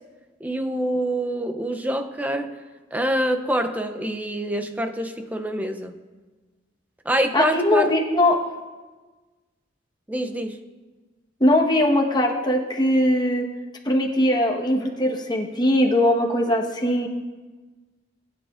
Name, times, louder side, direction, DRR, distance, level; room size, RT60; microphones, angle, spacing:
voice 1, 0.4-2.5 2.9-5.9 7.1-7.9 10.1-10.6, right 1 dB, 10° right, 6 dB, 0.5 m, -26 dB
voice 2, 7.3-8.4 11.4-13.5 13.8-17.1, left 1 dB, 25° left, 0 dB, 1.2 m, -20 dB
19.5 x 9.3 x 2.5 m, 1.3 s
head